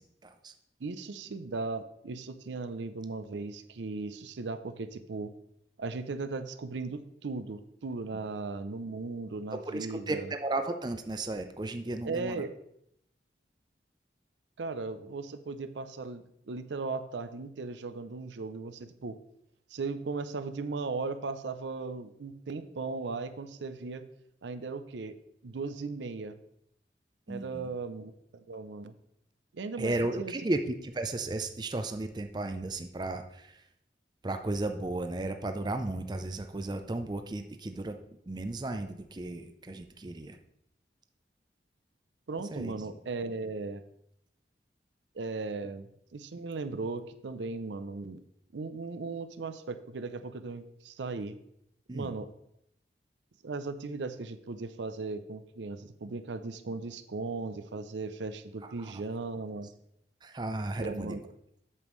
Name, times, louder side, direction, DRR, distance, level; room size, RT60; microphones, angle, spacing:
voice 1, 0.2-0.5 9.7-12.4 27.3-27.7 29.8-33.6 34.2-38.0 38.3-40.4 42.5-43.0 51.9-52.1 58.8-58.9 60.2-61.2, right 2 dB, 25° right, 7 dB, 0.4 m, -34 dB
voice 2, 0.8-5.3 5.8-10.3 12.0-12.5 14.6-19.2 19.7-24.0 24.4-25.1 25.4-26.4 27.3-28.9 29.5-30.3 42.3-43.8 45.1-48.2 48.5-51.4 51.9-52.3 53.4-59.7 60.8-61.2, right 3 dB, 90° right, 11 dB, 0.5 m, -37 dB
8.4 x 7.1 x 3.1 m, 0.74 s
head